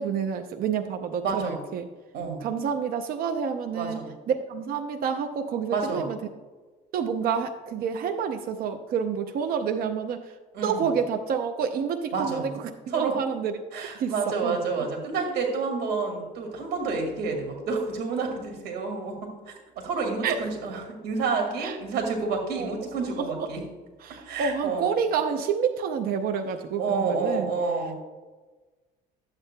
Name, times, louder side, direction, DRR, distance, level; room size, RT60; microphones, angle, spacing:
voice 1, 0.0-1.9 2.4-6.2 6.9-10.2 10.6-12.6 12.9-13.5 14.0-14.1 14.4-14.6 20.2-20.4 21.6-21.8 22.6-22.7 23.2-23.3 24.0-27.5, right 7 dB, 60° right, 6 dB, 0.6 m, -28 dB
voice 2, 1.2-1.6 2.1-2.5 3.7-4.1 5.7-6.1 10.5-11.0 12.1-12.5 12.9-13.2 13.7-23.6 24.1-24.9 26.8-28.0, right 4 dB, 85° right, 3 dB, 2.1 m, -29 dB
11.5 x 8.2 x 2.2 m, 1.3 s
cardioid pair, 110°, 17 cm